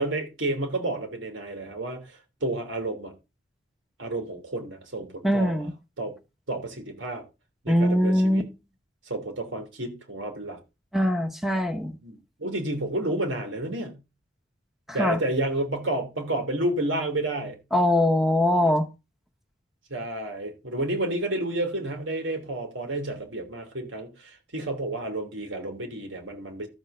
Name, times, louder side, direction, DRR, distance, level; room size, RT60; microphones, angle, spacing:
voice 1, 0.0-3.1 4.0-5.7 6.0-6.1 6.5-7.2 7.6-8.5 9.1-10.6 12.0-14.0 14.9-17.6 19.9-26.7, right 1 dB, 90° right, 3.3 m, -30 dB
voice 2, 5.2-5.7 7.7-8.4 10.9-11.9 14.9-15.2 17.7-18.9, left 1 dB, ahead, 1.1 m, -22 dB
13.0 x 4.6 x 6.8 m
head